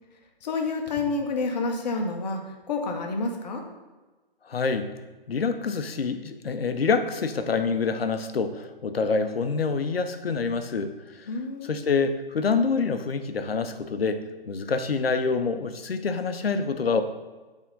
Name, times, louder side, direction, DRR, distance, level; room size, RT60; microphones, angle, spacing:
voice 1, 0.4-3.7 11.3-11.9, left 3 dB, 45° left, 3 dB, 1.0 m, -29 dB
voice 2, 4.5-4.9 5.3-10.9 11.2-11.3 11.7-17.0, left 4 dB, 85° left, 9 dB, 0.7 m, -26 dB
8.2 x 3.6 x 3.9 m, 1.2 s
figure-of-eight pair, 140°, 29 cm